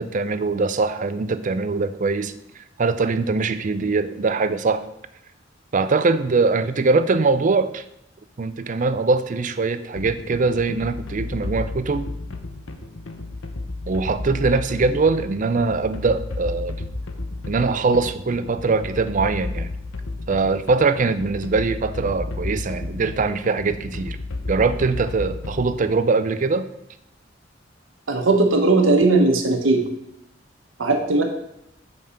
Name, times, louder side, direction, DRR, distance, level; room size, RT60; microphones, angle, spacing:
voice 1, 0.0-2.3 2.8-4.8 5.7-7.8 8.4-12.1 13.9-16.8 17.5-19.7 20.3-24.2 24.5-26.7, right 4 dB, 40° right, 12 dB, 0.5 m, -22 dB
sound 1, 10.0-25.9, left 2 dB, 80° left, 0.8 m, -32 dB
voice 2, 28.1-29.8 30.8-31.2, right 3 dB, 90° right, 3 dB, 1.0 m, -18 dB
5.6 x 5.3 x 6.4 m, 0.81 s
head